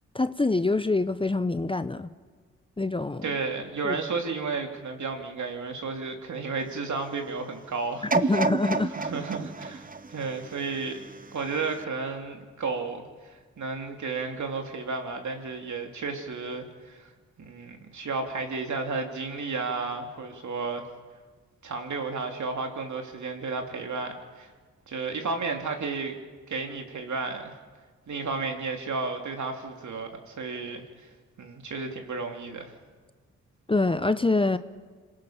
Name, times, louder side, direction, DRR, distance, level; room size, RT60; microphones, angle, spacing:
voice 1, 0.1-2.1 2.8-3.3 3.8-4.0 8.1-8.9 33.7-34.6, left 3 dB, 15° left, 12 dB, 0.8 m, -25 dB
voice 2, 3.2-8.3 8.9-11.0 11.3-17.1 17.4-20.8 21.6-24.5 24.9-26.2 26.5-27.5 28.1-30.8 31.4-32.7, right 4 dB, 60° right, 3 dB, 3.0 m, -33 dB
sound 1, 8.1-11.2 11.7-11.8, right 3 dB, 25° right, 1.0 m, -29 dB
26.5 x 18.0 x 5.9 m, 1.5 s
supercardioid pair, 50°, 33 cm